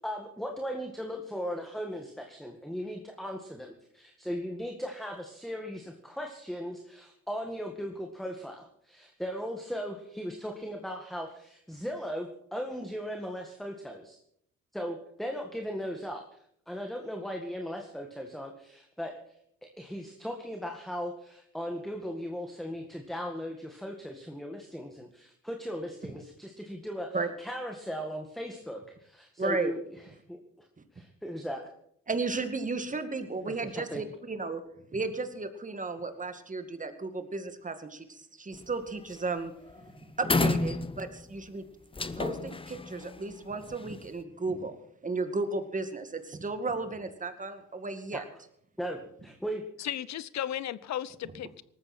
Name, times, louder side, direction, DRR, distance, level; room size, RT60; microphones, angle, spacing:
voice 1, 0.0-14.2 14.7-16.2 16.7-19.4 19.6-29.8 30.3-30.7 30.9-31.7 33.5-34.0 48.1-48.2 48.8-49.9, equal, ahead, 3 dB, 1.9 m, -38 dB
voice 2, 29.4-29.7 32.1-34.6 34.9-39.5 40.0-41.7 42.2-44.8 45.0-48.2, right 3 dB, 25° right, 8 dB, 2.2 m, -34 dB
sound 1, 38.5-38.8 39.1-39.4 39.7-39.8 40.2-41.3 41.9-44.0, left 3 dB, 20° left, 1.0 m, -31 dB
voice 3, 49.8-51.6, left 11 dB, 65° left, 19 dB, 0.8 m, -35 dB
19.0 x 14.0 x 4.4 m, 0.70 s
cardioid pair, 90°, 30 cm